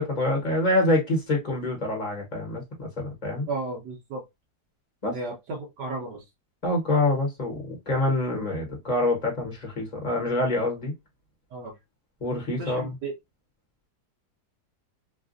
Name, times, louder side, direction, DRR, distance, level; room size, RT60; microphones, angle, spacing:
voice 1, 0.0-3.5 5.0-5.2 6.6-10.9 12.2-12.9, left 2 dB, 30° left, 1.1 m, -26 dB
voice 2, 3.5-4.2 5.1-6.2 11.5-11.7 12.6-13.1, right 3 dB, 85° right, 1.4 m, -34 dB
3.4 x 2.4 x 2.5 m
omnidirectional pair, 1.8 m